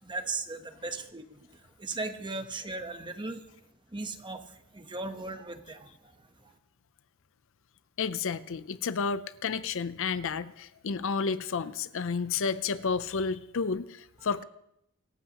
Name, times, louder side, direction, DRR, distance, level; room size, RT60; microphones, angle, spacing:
voice 1, 0.0-3.4 3.9-6.5, right 3 dB, 20° right, 7 dB, 1.0 m, -38 dB
voice 2, 8.0-14.4, left 5 dB, 60° left, 14 dB, 0.6 m, -31 dB
25.5 x 13.0 x 3.0 m, 0.79 s
head